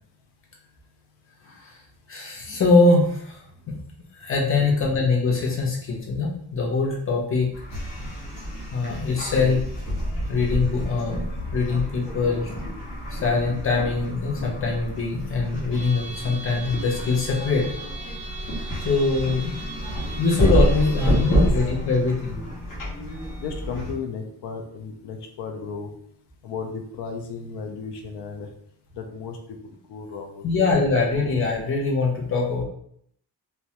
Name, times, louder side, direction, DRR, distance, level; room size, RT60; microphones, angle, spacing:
voice 1, 1.4-1.8 2.1-3.8 4.2-7.5 8.7-9.6 10.3-11.2 11.5-12.5 13.1-17.7 18.8-19.6 20.1-22.4 30.4-32.6, left 3 dB, 35° left, -2 dB, 0.5 m, -23 dB
sound 1, 7.5-23.9, equal, 60° left, 0.9 m, -28 dB
voice 2, 20.9-21.5 23.4-25.9 26.4-28.5 28.9-30.7, left 5 dB, 85° left, 4 dB, 0.5 m, -35 dB
2.2 x 2.1 x 2.7 m, 0.67 s
wide cardioid pair, 170°, 40 cm